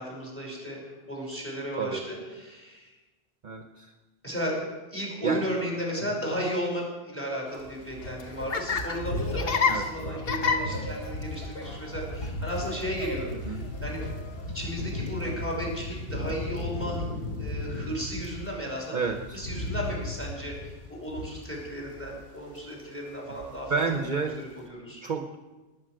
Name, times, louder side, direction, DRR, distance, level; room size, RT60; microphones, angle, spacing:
voice 1, 0.0-2.9 4.2-4.6 4.9-14.1 14.5-17.0 17.4-19.0 19.3-25.0, equal, 10° left, -2 dB, 5.4 m, -34 dB
voice 2, 3.4-3.9 5.2-5.4 6.1-6.2 9.6-9.9 13.4-13.6 18.9-19.4 23.7-24.4 25.0-25.4, right 4 dB, 50° right, 5 dB, 0.9 m, -30 dB
sound 1, 7.5-18.5 18.8-22.2 22.5-22.8 23.1-23.9 24.2-24.4, left 1 dB, 40° left, 2.5 m, -36 dB
Laughter, 7.9-15.5, left 5 dB, 65° left, 1.4 m, -32 dB
19.0 x 9.5 x 6.3 m, 1.2 s
omnidirectional pair, 1.1 m